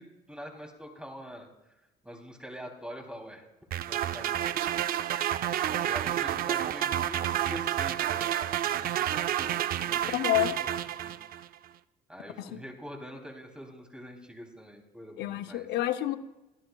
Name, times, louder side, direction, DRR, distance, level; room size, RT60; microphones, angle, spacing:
voice 1, 0.0-1.5 2.0-3.5 3.9-4.8 5.7-10.5 11.0-11.2 12.1-15.7, equal, 5° right, 1 dB, 2.8 m, -45 dB
sound 1, 3.7-11.5, right 11 dB, 60° right, 0.5 m, -30 dB
voice 2, 10.1-10.6 12.4-12.6 15.2-16.2, left 14 dB, 80° left, 10 dB, 0.6 m, -28 dB
24.0 x 11.5 x 2.3 m, 1.0 s
cardioid pair, 110°, 17 cm